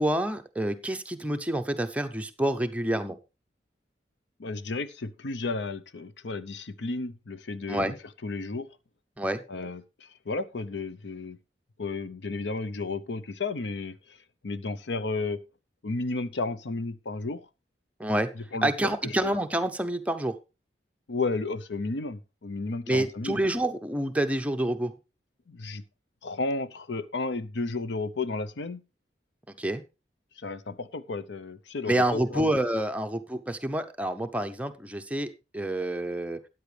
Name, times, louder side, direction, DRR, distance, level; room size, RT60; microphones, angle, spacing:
voice 1, 0.0-3.2 7.7-8.0 9.2-9.4 18.0-18.3 18.6-20.4 22.9-24.9 29.6-29.8 31.9-36.4, right 1 dB, 10° right, 0.7 m, -28 dB
voice 2, 4.4-7.9 8.2-8.7 9.5-11.4 11.8-14.0 14.4-15.4 15.8-17.5 18.4-18.7 19.0-19.3 21.1-23.4 25.5-25.8 26.2-28.8 30.4-32.5, left 3 dB, 80° left, 0.7 m, -33 dB
13.5 x 9.4 x 3.3 m
head